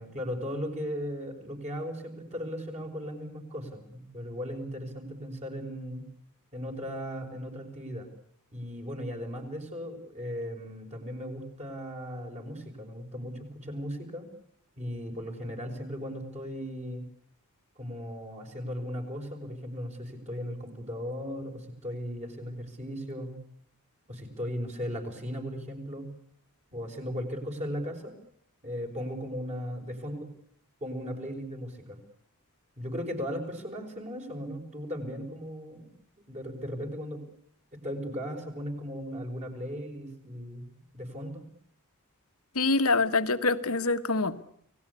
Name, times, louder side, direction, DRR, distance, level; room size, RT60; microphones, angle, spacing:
voice 1, 0.0-6.0 6.5-8.1 8.5-14.3 14.8-17.0 17.8-23.4 24.1-26.1 26.7-28.1 28.6-30.3 30.8-32.0 32.8-35.9 36.2-37.2 37.7-41.5, equal, 30° right, 3 dB, 5.8 m, -37 dB
voice 2, 42.5-44.4, left 3 dB, 75° left, 10 dB, 1.6 m, -25 dB
29.5 x 18.5 x 8.4 m, 0.67 s
head